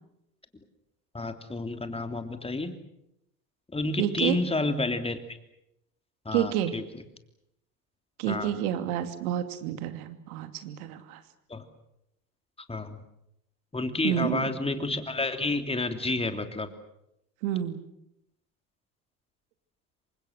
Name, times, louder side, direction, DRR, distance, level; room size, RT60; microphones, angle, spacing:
voice 1, 1.1-2.7 3.7-5.2 6.2-6.8 8.3-8.5 11.5-11.6 12.7-13.0 13.7-16.7, left 2 dB, 10° left, 7 dB, 3.1 m, -30 dB
voice 2, 4.0-4.4 6.3-6.7 8.2-11.2 14.0-14.4 17.4-17.8, right 11 dB, 65° right, 9 dB, 2.7 m, -29 dB
27.5 x 25.5 x 6.7 m, 0.82 s
figure-of-eight pair, 70°, 47 cm